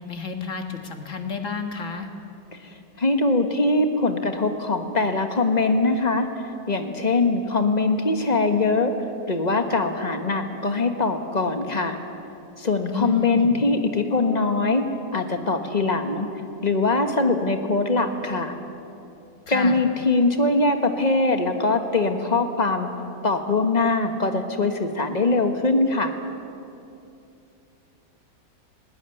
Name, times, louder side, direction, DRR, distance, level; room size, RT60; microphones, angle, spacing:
voice 1, 0.1-2.1 12.8-13.6 19.5-19.8, left 6 dB, 50° left, 5 dB, 1.9 m, -30 dB
voice 2, 2.6-6.3 6.7-8.9 9.3-12.0 12.6-14.9 15.1-16.3 16.6-18.5 19.5-22.9 23.2-26.2, left 3 dB, 25° left, 6 dB, 1.4 m, -22 dB
19.5 x 18.0 x 9.9 m, 2.7 s
omnidirectional pair, 1.8 m